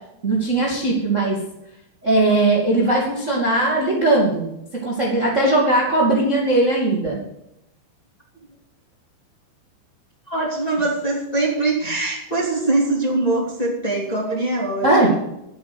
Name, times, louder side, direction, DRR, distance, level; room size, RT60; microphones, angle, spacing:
voice 1, 0.2-1.4 2.0-4.4 4.7-7.2 14.8-15.1, right 2 dB, 50° right, -2 dB, 0.9 m, -19 dB
voice 2, 10.3-15.2, right 2 dB, 10° left, -3 dB, 1.8 m, -22 dB
11.0 x 8.6 x 7.8 m, 0.83 s
omnidirectional pair, 5.4 m